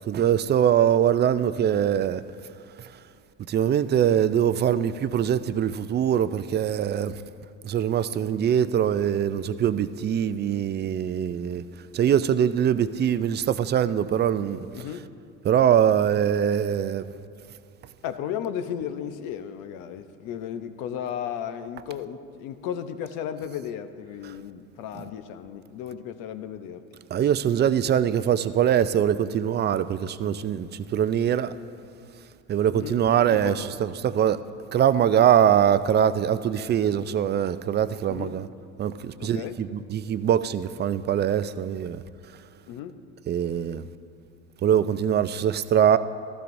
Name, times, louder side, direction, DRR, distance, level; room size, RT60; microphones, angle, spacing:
voice 1, 0.0-2.2 2.8-3.0 3.5-7.2 7.6-11.6 11.9-14.9 15.4-17.1 24.2-24.3 24.9-25.1 27.1-31.5 32.5-34.4 34.7-38.5 38.8-42.0 42.3-42.4 43.3-43.9 44.6-46.0, right 9 dB, 30° right, 0.4 m, -23 dB
voice 2, 14.7-15.1 18.0-26.8 32.7-33.0 33.3-33.7 38.1-38.3 39.2-39.6 42.7-43.0, left 9 dB, 70° left, 0.9 m, -34 dB
15.0 x 13.0 x 2.6 m
supercardioid pair, 90°, 33 cm